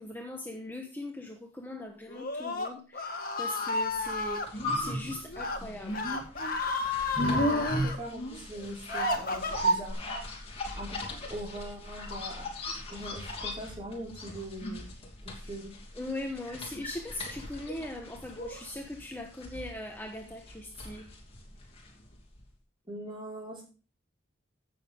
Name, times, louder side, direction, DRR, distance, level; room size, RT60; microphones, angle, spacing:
voice 1, 0.0-6.1 15.9-21.1, left 1 dB, 10° left, 2 dB, 1.0 m, -40 dB
Screaming, 2.1-4.5 5.3-5.6 5.9-8.0 8.5-9.9, left 3 dB, 50° left, 1.8 m, -32 dB
sound 1, 4.1-22.1 22.4-22.5, equal, 30° left, 3.0 m, -35 dB
voice 2, 7.2-10.1 10.8-11.0 11.3-12.5 12.9-14.8 15.2-15.7 22.9-23.6, right 1 dB, 25° right, -2 dB, 4.7 m, -41 dB
16.0 x 6.9 x 3.6 m, 0.35 s
head